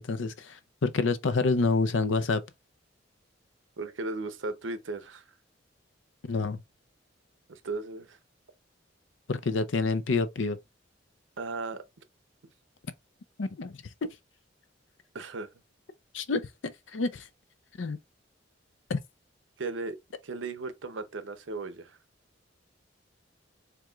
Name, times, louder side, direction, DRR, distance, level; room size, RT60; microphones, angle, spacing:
voice 1, 0.0-2.4 6.3-6.6 9.3-10.6 13.4-13.7 14.0-14.1 16.1-16.5 16.9-17.3 17.8-18.0 18.9-19.0, left 3 dB, 85° left, 0.6 m, -27 dB
voice 2, 3.8-5.3 7.5-8.2 11.4-11.8 15.1-15.5 19.6-20.0 20.2-22.0, right 3 dB, 85° right, 0.7 m, -36 dB
4.6 x 3.5 x 2.4 m
head